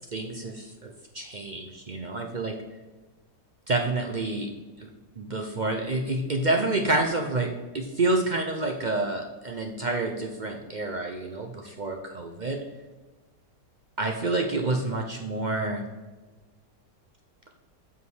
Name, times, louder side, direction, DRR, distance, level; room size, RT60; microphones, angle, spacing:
voice 1, 0.1-2.6 3.7-4.5 4.8-4.9 5.2-12.6 14.0-15.9, right 2 dB, 60° right, 3 dB, 0.4 m, -28 dB
8.1 x 5.1 x 4.8 m, 1.2 s
omnidirectional pair, 1.8 m